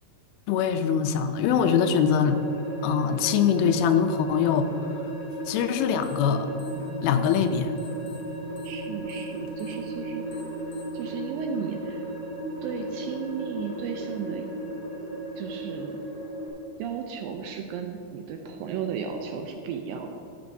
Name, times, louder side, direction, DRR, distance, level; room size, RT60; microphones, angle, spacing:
voice 1, 0.5-2.4 2.8-5.1 5.5-6.5 7.0-7.7, left 7 dB, 85° left, 8 dB, 2.3 m, -23 dB
sound 1, 1.5-16.5, right 1 dB, 50° left, 2.8 m, -35 dB
sound 2, 6.0-6.3 6.5-7.5 7.8-11.0, left 5 dB, 65° left, 1.6 m, -52 dB
sound 3, 6.7-15.7, right 4 dB, 65° right, 1.7 m, -45 dB
voice 2, 8.6-10.4 10.9-12.0 12.6-14.5 15.4-16.0 16.8-20.1, right 7 dB, 80° right, 4 dB, 2.1 m, -34 dB
12.5 x 8.7 x 2.7 m, 2.8 s
omnidirectional pair, 4.5 m